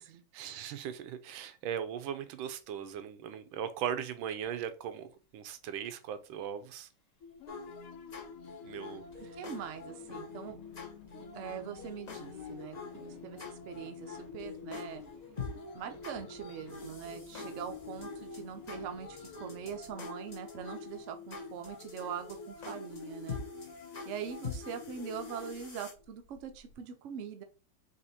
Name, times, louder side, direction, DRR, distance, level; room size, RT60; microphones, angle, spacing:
voice 1, 0.3-5.1 5.3-6.9 8.6-9.0, right 9 dB, 85° right, 1.4 m, -38 dB
sound 1, 4.4-5.2 5.5-20.5 21.0-21.1 21.3-22.5, left 2 dB, 25° left, 1.1 m, -62 dB
sound 2, 7.2-26.7, left 5 dB, 80° left, 0.7 m, -50 dB
sound 3, 7.5-25.9, left 4 dB, 45° left, 0.5 m, -45 dB
voice 2, 9.4-10.6 11.3-15.0 15.7-23.4 24.0-27.4, right 8 dB, 70° right, 0.7 m, -42 dB
4.2 x 2.8 x 4.1 m
omnidirectional pair, 2.1 m